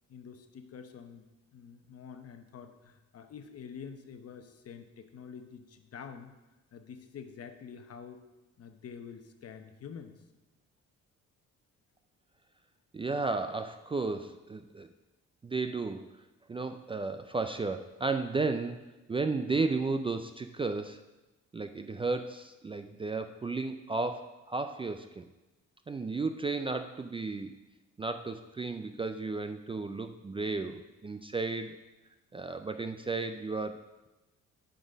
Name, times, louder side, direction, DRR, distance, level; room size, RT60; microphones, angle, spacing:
voice 1, 0.1-1.3 1.5-6.3 6.7-8.2 8.6-10.2, left 7 dB, 55° left, 7 dB, 0.9 m, -47 dB
voice 2, 12.9-14.9 15.4-16.1 16.5-18.8 19.1-21.0 21.5-25.3 25.9-27.5 28.0-31.8 32.3-33.8, right 3 dB, 20° right, 8 dB, 0.3 m, -33 dB
9.1 x 4.1 x 5.0 m, 1.0 s
cardioid pair, 90°, 30 cm